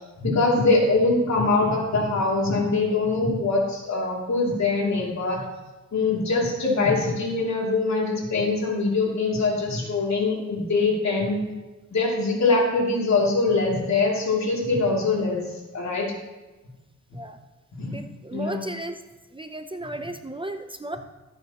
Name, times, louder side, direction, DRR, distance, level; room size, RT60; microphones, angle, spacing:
voice 1, 0.2-5.4 5.9-11.4 11.9-15.4 15.7-16.1 17.8-17.9 18.3-18.7, left 3 dB, 65° left, -3 dB, 2.8 m, -23 dB
voice 2, 17.9-19.0 19.3-21.0, right 1 dB, 15° right, 7 dB, 0.6 m, -34 dB
13.5 x 8.7 x 3.0 m, 1.1 s
cardioid pair, 85°, 29 cm